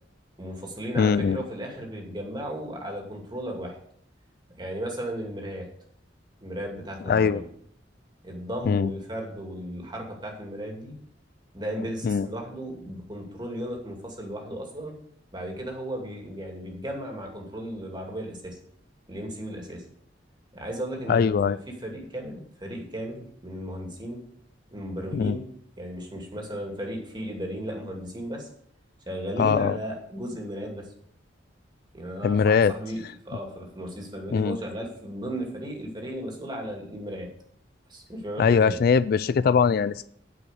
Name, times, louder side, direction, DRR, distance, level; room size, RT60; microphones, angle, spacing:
voice 1, 0.4-3.8 4.6-5.7 6.4-7.5 8.2-11.0 11.5-14.9 15.3-18.6 19.1-19.8 20.5-24.2 24.7-25.5 25.8-28.5 29.1-30.9 31.9-37.3 37.9-38.8, equal, 25° right, 1 dB, 2.4 m, -35 dB
voice 2, 1.0-1.4 7.1-7.4 8.7-8.9 12.0-12.3 21.1-21.6 25.1-25.4 29.4-29.8 32.2-32.7 34.3-34.6 38.4-40.1, left 6 dB, 55° left, 16 dB, 0.3 m, -21 dB
9.4 x 5.3 x 8.2 m, 0.66 s
head